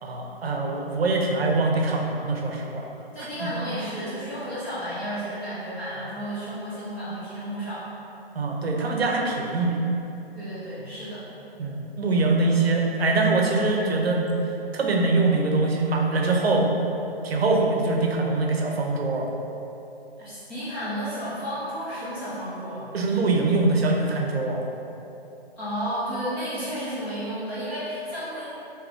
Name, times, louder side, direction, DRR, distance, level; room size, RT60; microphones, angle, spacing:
voice 1, 0.0-2.9 3.2-3.5 8.3-9.8 11.6-14.2 14.7-16.7 17.2-19.3 22.9-24.6, right 3 dB, 75° right, 0 dB, 0.7 m, -23 dB
voice 2, 3.1-7.8 10.3-11.2 20.2-22.9 25.6-28.5, equal, 10° left, -14 dB, 0.6 m, -32 dB
3.5 x 2.9 x 3.4 m, 2.9 s
hypercardioid pair, 160°, 31 cm